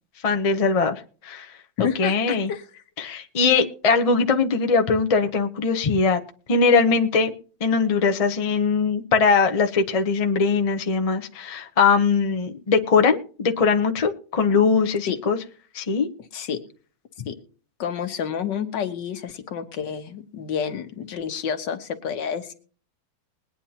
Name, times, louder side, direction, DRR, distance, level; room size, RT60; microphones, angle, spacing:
voice 1, 0.2-1.5 1.8-2.5 3.0-6.2 6.5-7.3 7.6-15.4 15.7-16.1, left 5 dB, 50° left, 4 dB, 0.4 m, -21 dB
voice 2, 1.8-2.7 15.1-15.2 16.3-16.6 17.3-17.4 17.8-22.5, left 7 dB, 65° left, 7 dB, 1.7 m, -29 dB
21.5 x 9.5 x 2.8 m, 0.40 s
omnidirectional pair, 2.1 m